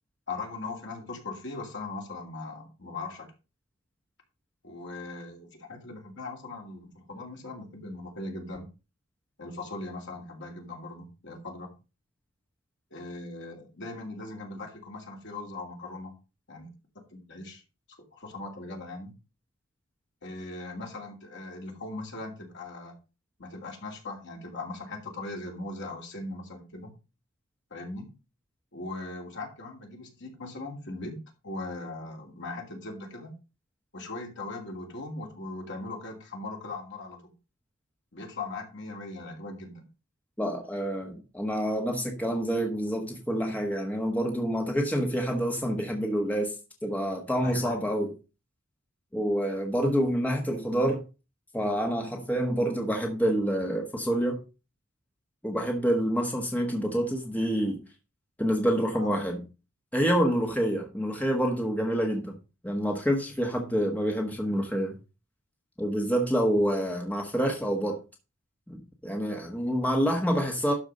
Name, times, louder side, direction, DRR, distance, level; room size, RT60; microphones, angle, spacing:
voice 1, 0.3-3.3 4.6-8.7 9.4-11.7 12.9-16.1 16.5-16.7 17.1-17.6 18.1-19.1 20.2-22.9 23.4-26.9 27.7-28.1 28.7-33.3 33.9-37.3 38.1-39.8 47.4-47.8 58.9-59.2 69.8-69.9, left 2 dB, 55° left, 2.9 m, -39 dB
voice 2, 40.4-46.5 46.8-48.1 49.1-51.0 51.5-54.4 55.4-57.8 58.4-59.4 59.9-62.4 62.6-65.0 65.8-68.0 68.7-70.7, equal, 5° left, 1.3 m, -27 dB
12.0 x 4.6 x 5.2 m
head